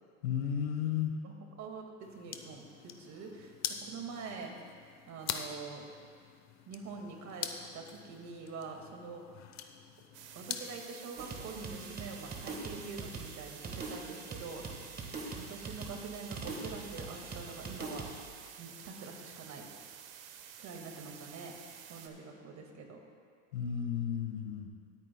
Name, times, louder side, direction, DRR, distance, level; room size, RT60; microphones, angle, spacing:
voice 1, 0.2-1.1 23.5-24.7, left 9 dB, 90° left, 3 dB, 1.3 m, -33 dB
voice 2, 1.2-2.6 3.0-4.5 5.1-5.9 6.7-9.2 10.4-14.6 15.4-18.1 18.6-19.6 20.6-21.5 21.9-23.0 24.6-24.7, right 4 dB, 45° right, 2 dB, 1.9 m, -45 dB
sound 1, 2.0-10.8, left 8 dB, 40° left, 0.9 m, -44 dB
sound 2, 10.1-22.1, right 9 dB, 75° right, 1.1 m, -51 dB
sound 3, 11.2-18.3, right 3 dB, 25° right, 1.5 m, -43 dB
20.5 x 8.9 x 2.2 m, 2.1 s
supercardioid pair, 105°, 40 cm